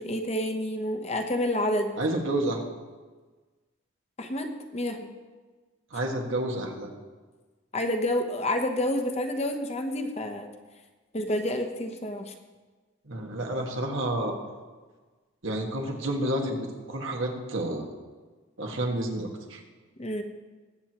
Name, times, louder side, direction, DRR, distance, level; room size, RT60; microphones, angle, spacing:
voice 1, 0.0-1.9 4.2-5.1 7.7-10.5 11.1-12.3 20.0-20.2, left 1 dB, 30° left, 4 dB, 0.9 m, -29 dB
voice 2, 2.0-2.6 5.9-6.9 13.1-14.4 15.4-17.8 18.6-19.6, right 1 dB, 75° right, 1 dB, 1.7 m, -30 dB
21.0 x 7.8 x 3.0 m, 1.3 s
head